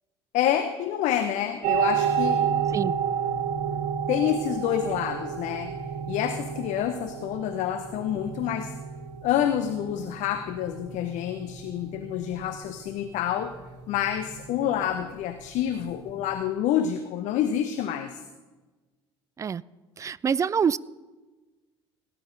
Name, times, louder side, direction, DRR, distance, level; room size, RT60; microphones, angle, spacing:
voice 1, 0.3-2.5 4.1-5.7 6.1-8.7 9.2-13.6 13.9-18.2, left 10 dB, 55° left, 0.8 m, -28 dB
sound 1, 1.6-16.4, right 8 dB, 60° right, 1.7 m, -31 dB
voice 2, 20.0-20.8, right 7 dB, 20° right, 0.3 m, -25 dB
18.0 x 10.5 x 3.9 m
figure-of-eight pair, 60°, 15 cm